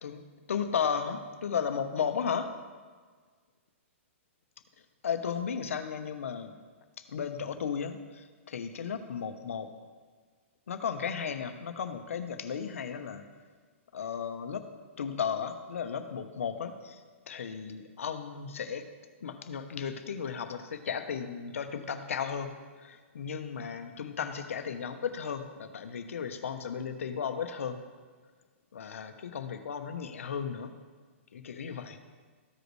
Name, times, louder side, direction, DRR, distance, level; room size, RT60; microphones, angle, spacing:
voice 1, 0.5-2.5 5.0-6.5 7.0-9.7 10.7-13.2 13.9-14.7 15.0-18.8 19.2-27.8 28.7-30.7 31.3-32.0, left 7 dB, 80° left, 7 dB, 1.0 m, -35 dB
14.5 x 5.2 x 3.2 m, 1.5 s
hypercardioid pair, 170°, 7 cm